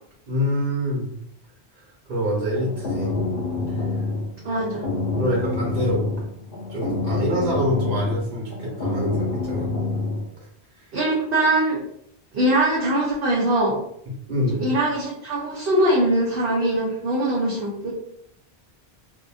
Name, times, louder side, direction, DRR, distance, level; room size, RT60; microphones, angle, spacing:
voice 1, 0.3-1.1 2.1-3.1 3.7-4.0 5.2-6.0 6.7-9.7 10.8-10.9 14.3-14.6, equal, 40° right, -4 dB, 1.2 m, -25 dB
sound 1, 2.5-10.2, left 3 dB, 55° left, 0.9 m, -27 dB
voice 2, 4.4-4.8 10.9-11.8 12.3-13.8 14.6-17.9, right 1 dB, 60° right, -4 dB, 0.8 m, -22 dB
2.7 x 2.4 x 2.3 m, 0.71 s
omnidirectional pair, 1.1 m